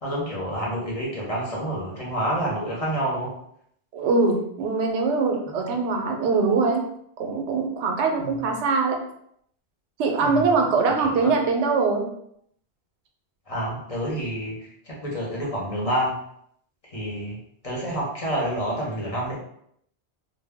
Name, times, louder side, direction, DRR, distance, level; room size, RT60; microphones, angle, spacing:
voice 1, 0.0-3.3 8.2-8.4 10.2-10.5 10.9-11.3 13.5-16.2 16.9-17.4 17.6-19.4, right 1 dB, 35° left, -5 dB, 0.8 m, -28 dB
voice 2, 3.9-6.8 7.2-9.0 10.0-12.0, right 4 dB, 85° right, 2 dB, 0.9 m, -22 dB
2.2 x 2.1 x 3.4 m, 0.71 s
omnidirectional pair, 1.1 m